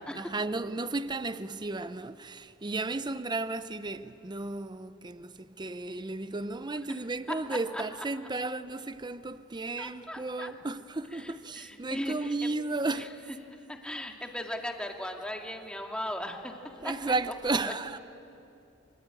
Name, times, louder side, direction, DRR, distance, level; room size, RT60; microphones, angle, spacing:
voice 1, 0.1-13.1 16.8-18.0, right 3 dB, 20° right, 0.6 m, -34 dB
voice 2, 9.8-10.5 11.1-12.5 12.9-13.0 13.7-16.6 16.8-17.1, left 1 dB, 5° left, 2.1 m, -37 dB
25.0 x 24.0 x 9.0 m
head